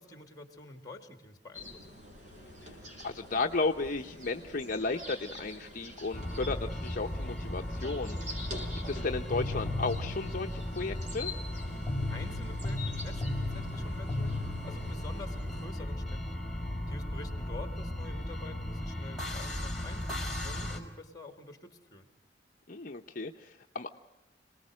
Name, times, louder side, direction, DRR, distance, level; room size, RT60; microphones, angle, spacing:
voice 1, 0.0-1.9 12.1-16.4 16.9-22.1, left 2 dB, 20° left, 6 dB, 2.4 m, -48 dB
sound 1, 1.5-15.7, left 1 dB, 45° right, 6.0 m, -46 dB
voice 2, 3.0-8.4 8.9-11.3 22.7-23.9, left 3 dB, 50° left, 3 dB, 0.8 m, -34 dB
sound 2, 6.1-20.8, left 1 dB, ahead, 4.7 m, -35 dB
27.5 x 19.5 x 6.4 m, 1.1 s
head